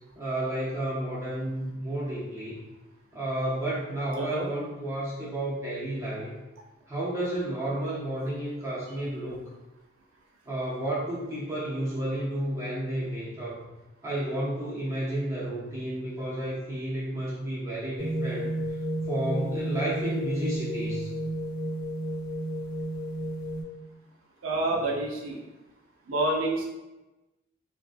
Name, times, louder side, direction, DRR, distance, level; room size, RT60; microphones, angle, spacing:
voice 1, 0.1-2.6 3.1-6.3 6.9-9.4 10.5-13.7 14.0-18.6 19.1-21.1, right 1 dB, 15° right, -8 dB, 0.6 m, -31 dB
voice 2, 4.1-4.5 24.4-25.4 26.1-26.6, right 2 dB, 85° right, -2 dB, 0.7 m, -28 dB
sound 1, 18.0-23.6, right 1 dB, 45° left, 0.8 m, -32 dB
3.0 x 2.4 x 2.5 m, 1.0 s
head